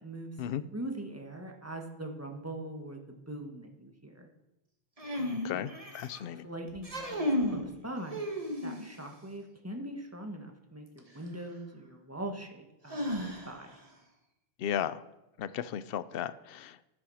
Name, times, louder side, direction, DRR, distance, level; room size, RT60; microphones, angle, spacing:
voice 1, 0.0-0.3 0.6-4.3 5.5-5.6 6.3-8.3 8.6-13.8, right 1 dB, 15° right, 3 dB, 1.5 m, -42 dB
sound 1, 5.0-6.2 6.7-7.6 8.1-9.0 11.0-11.1 12.9-13.7, left 1 dB, 35° right, 1.9 m, -33 dB
voice 2, 5.2-6.5 14.6-15.0 15.4-16.9, left 9 dB, 65° left, 15 dB, 0.8 m, -35 dB
12.0 x 9.7 x 6.3 m, 0.95 s
omnidirectional pair, 1.1 m